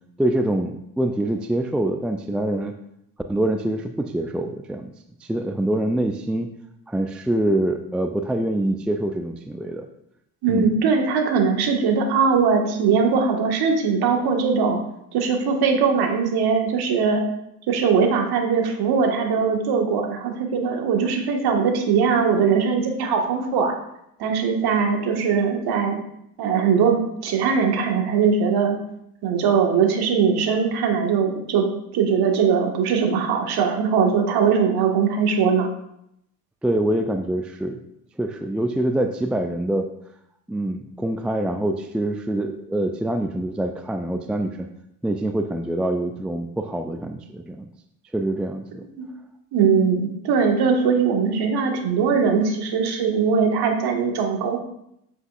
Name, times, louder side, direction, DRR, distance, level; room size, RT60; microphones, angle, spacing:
voice 1, 0.2-2.7 3.3-4.9 5.2-6.5 6.9-9.9 10.5-10.7 36.6-37.8 38.2-39.9 40.5-44.7 45.0-47.7 48.1-48.8, right 1 dB, ahead, 6 dB, 0.3 m, -25 dB
voice 2, 10.4-14.8 15.1-17.2 17.7-23.7 24.2-26.0 26.4-28.8 29.2-31.7 31.9-35.7 48.9-49.1 49.5-54.6, right 6 dB, 50° right, 2 dB, 1.7 m, -20 dB
8.2 x 7.8 x 2.5 m, 0.78 s
figure-of-eight pair, 60°, 48 cm